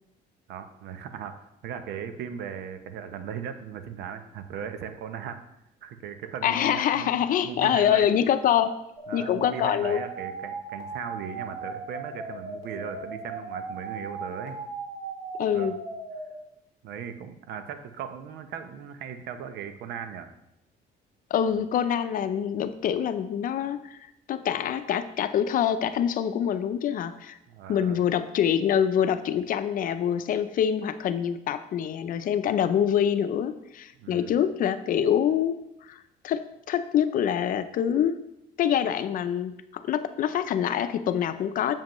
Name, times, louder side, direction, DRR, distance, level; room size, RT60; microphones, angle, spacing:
voice 1, 0.5-5.4 5.8-7.2 7.4-8.1 9.1-14.6 15.5-15.7 16.8-20.3 27.5-28.0 34.0-34.4, right 8 dB, 75° right, 9 dB, 0.8 m, -38 dB
voice 2, 6.4-8.7 9.1-10.0 15.4-15.8 21.3-24.0 24.3-27.4 27.7-35.6 35.9-38.2 38.6-41.7, left 9 dB, 55° left, 12 dB, 0.5 m, -25 dB
sound 1, 9.0-16.3, right 3 dB, 40° right, 2.4 m, -37 dB
7.4 x 7.2 x 3.1 m, 0.83 s
cardioid pair, 110°, 17 cm